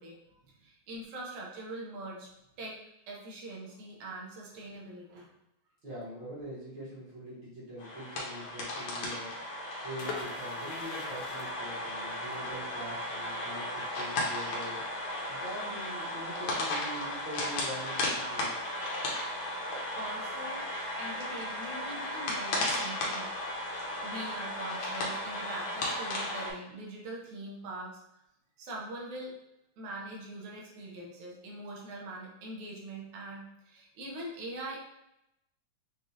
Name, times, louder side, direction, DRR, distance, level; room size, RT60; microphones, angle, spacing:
voice 1, 0.0-2.3 2.6-2.8 3.1-5.3 20.0-20.6 21.0-23.3 23.8-28.0 28.6-29.3 29.8-34.8, right 1 dB, 80° right, -2 dB, 2.3 m, -43 dB
voice 2, 5.8-9.3 9.8-14.8 15.3-18.7, equal, 50° right, -9 dB, 1.5 m, -43 dB
sound 1, 7.8-26.5, left 1 dB, 65° left, 1.9 m, -35 dB
sound 2, 10.0-15.6 15.9-16.0 16.3-16.6, left 4 dB, 85° left, 2.0 m, -46 dB
6.3 x 2.3 x 2.7 m, 0.84 s
omnidirectional pair, 3.4 m